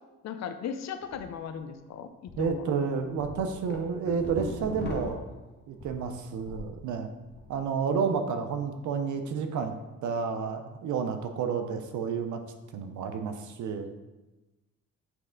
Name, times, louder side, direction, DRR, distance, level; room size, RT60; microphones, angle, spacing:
voice 1, 0.2-2.6 7.5-7.6 8.0-8.1, left 7 dB, 60° left, 9 dB, 0.6 m, -37 dB
sound 1, 1.0-1.2 1.6-1.7 2.3-2.5 2.9-6.7 7.1-7.5, left 2 dB, 35° left, 1.2 m, -39 dB
voice 2, 2.4-5.2 5.7-7.1 7.5-9.7 10.0-12.4 12.7-13.9, right 6 dB, 75° right, 7 dB, 0.7 m, -30 dB
7.7 x 3.2 x 3.8 m, 1.1 s
cardioid pair, 90°, 30 cm